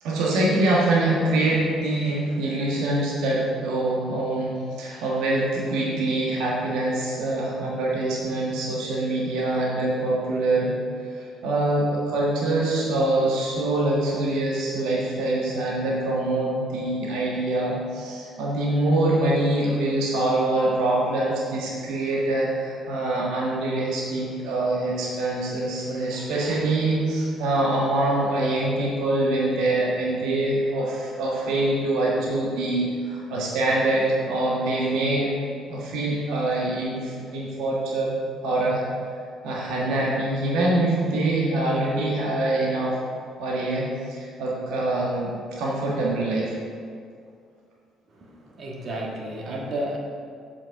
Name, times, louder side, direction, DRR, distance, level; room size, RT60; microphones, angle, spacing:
voice 1, 0.0-10.7 11.1-35.3 35.7-38.1 38.4-38.8 39.4-43.0 43.4-46.5, right 2 dB, 65° right, -4 dB, 1.4 m, -24 dB
voice 2, 48.1-50.0, right 1 dB, 50° right, -2 dB, 1.7 m, -32 dB
7.5 x 6.0 x 4.8 m, 2.2 s
hypercardioid pair, 50°, 0 cm